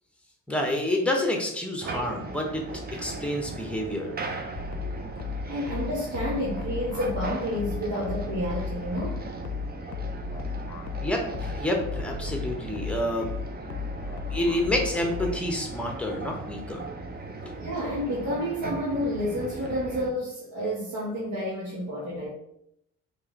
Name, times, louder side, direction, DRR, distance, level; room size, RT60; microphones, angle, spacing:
voice 1, 0.5-2.6 3.0-4.1 11.0-13.3 14.2-16.8 17.4-17.5, left 1 dB, 5° left, 2 dB, 0.9 m, -28 dB
sound 1, 1.8-20.1, right 2 dB, 30° right, 0.6 m, -38 dB
sound 2, 4.5-15.6, left 5 dB, 75° left, 0.5 m, -35 dB
voice 2, 5.5-9.2 17.6-22.3, equal, 75° right, -7 dB, 1.2 m, -30 dB
3.0 x 3.0 x 3.7 m, 0.75 s
cardioid pair, 90°, 30 cm